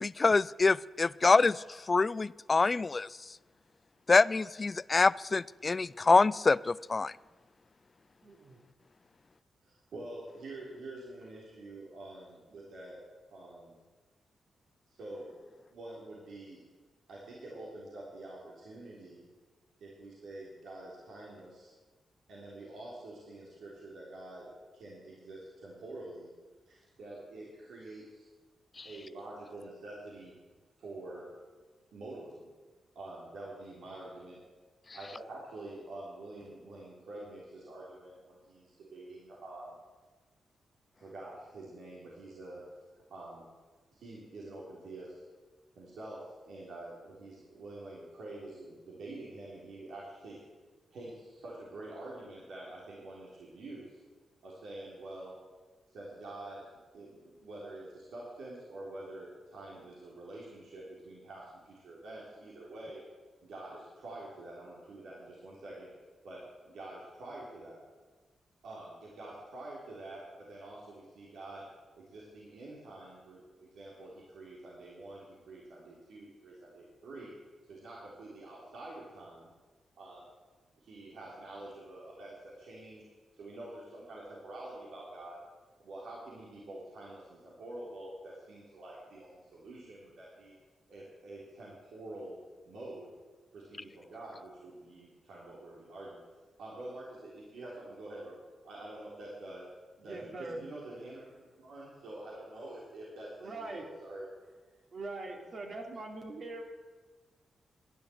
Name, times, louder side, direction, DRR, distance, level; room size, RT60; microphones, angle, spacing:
voice 1, 0.0-3.1 4.1-7.1 28.8-28.9, left 3 dB, 40° left, 21 dB, 0.3 m, -25 dB
voice 2, 8.2-8.6 100.0-100.6 103.4-103.8 104.9-106.6, right 2 dB, 60° right, 1 dB, 2.9 m, -42 dB
voice 3, 9.6-13.0 13.3-13.8 14.9-15.3 15.7-16.6 17.1-19.3 19.8-21.7 22.3-26.3 26.7-28.2 28.8-30.3 30.8-31.2 31.9-32.4 33.0-34.4 34.9-39.8 41.0-42.6 43.1-43.4 43.9-45.2 45.8-50.4 50.9-54.0 54.4-55.3 55.9-63.0 63.4-65.9 66.2-67.8 68.6-71.7 72.0-77.3 77.7-79.5 80.0-80.3 80.8-83.1 83.3-85.4 85.8-90.5 90.9-92.4 92.7-93.1 93.5-96.2 96.6-98.3 98.6-99.7 100.0-104.5, right 2 dB, 80° right, -5 dB, 3.6 m, -47 dB
12.0 x 10.5 x 7.8 m, 1.3 s
cardioid pair, 65°, 0 cm